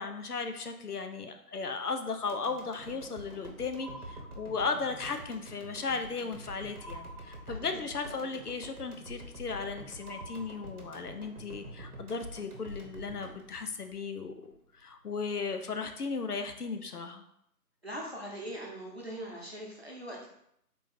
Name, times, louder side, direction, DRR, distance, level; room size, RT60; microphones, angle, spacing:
voice 1, 0.0-14.5 14.8-17.2, left 4 dB, 75° left, 7 dB, 0.6 m, -36 dB
sound 1, 2.3-14.5 14.9-15.0, right 1 dB, 70° right, 0.9 m, -47 dB
sound 2, 3.8-5.0 6.8-8.0 10.0-11.2, right 1 dB, ahead, 0.7 m, -50 dB
voice 2, 7.5-7.8 8.1-8.4 17.8-20.3, right 1 dB, 45° right, -3 dB, 0.8 m, -42 dB
3.7 x 2.5 x 4.2 m, 0.74 s
figure-of-eight pair, 180°, 46 cm